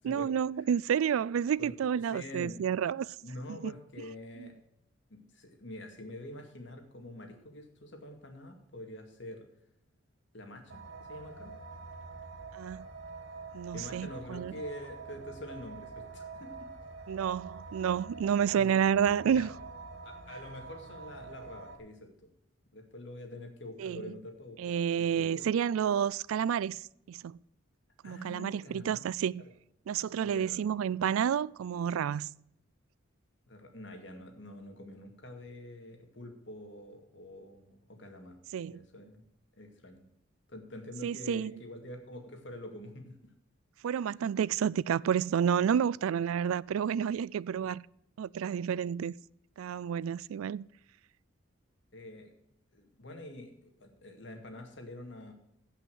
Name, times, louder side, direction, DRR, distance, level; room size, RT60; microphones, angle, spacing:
voice 1, 0.0-3.2 3.6-3.7 4.4-4.5 12.5-12.9 13.5-14.5 17.1-19.5 23.8-24.1 24.6-27.4 28.0-29.4 29.9-32.3 38.5-38.8 41.0-41.5 43.8-47.8 48.2-49.1 49.6-50.7, right 8 dB, 85° right, 0.3 m, -30 dB
voice 2, 2.1-2.6 3.2-4.5 5.1-9.5 10.3-11.5 13.7-16.7 18.4-18.7 19.2-19.5 20.0-22.1 22.7-25.4 28.0-29.1 30.2-30.6 33.5-38.4 38.7-39.2 39.6-40.1 40.5-43.3 51.9-52.3 52.7-55.3, left 1 dB, 60° left, 2.2 m, -46 dB
sound 1, 10.7-21.8, right 4 dB, 70° right, 1.6 m, -46 dB
16.0 x 5.7 x 6.3 m
head